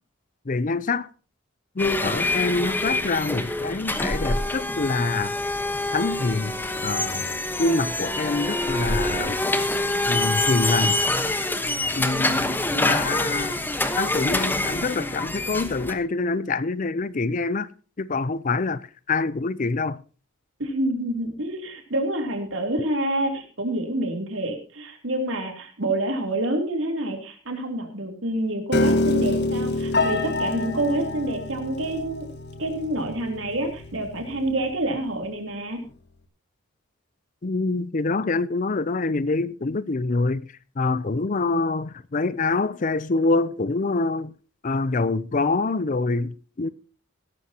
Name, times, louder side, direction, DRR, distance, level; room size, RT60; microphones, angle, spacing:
voice 1, 0.5-1.1 1.8-5.4 5.9-6.5 6.8-7.3 7.6-9.4 10.1-11.0 12.0-13.6 14.0-17.7 18.0-20.0 37.4-40.5 40.8-44.3 44.6-46.7, left 3 dB, 40° left, 0.5 m, -25 dB
sound 1, 1.8-15.9, left 2 dB, 10° left, 1.1 m, -26 dB
voice 2, 20.6-32.3 32.6-35.9, right 1 dB, 70° right, 3.3 m, -27 dB
Piano, 28.7-34.9, left 2 dB, 55° left, 1.4 m, -27 dB
17.0 x 13.0 x 2.9 m
head